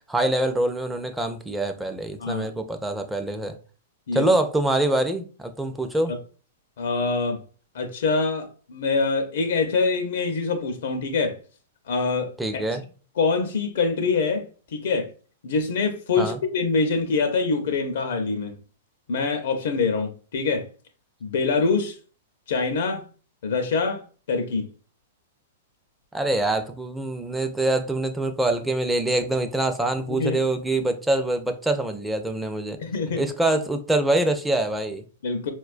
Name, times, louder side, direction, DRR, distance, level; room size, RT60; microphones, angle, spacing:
voice 1, 0.1-3.6 4.1-6.1 12.4-12.8 16.2-16.4 26.1-32.8 33.2-35.0, right 2 dB, 5° right, 0.4 m, -25 dB
voice 2, 6.8-7.4 7.7-11.4 11.9-12.6 13.2-15.1 15.4-18.6 19.1-20.7 21.2-22.0 22.5-23.0 23.4-24.0 24.3-24.7 30.1-30.4 32.8-33.3 35.2-35.5, left 4 dB, 70° left, 0.5 m, -25 dB
4.2 x 2.2 x 2.4 m
hypercardioid pair, 135°, 0 cm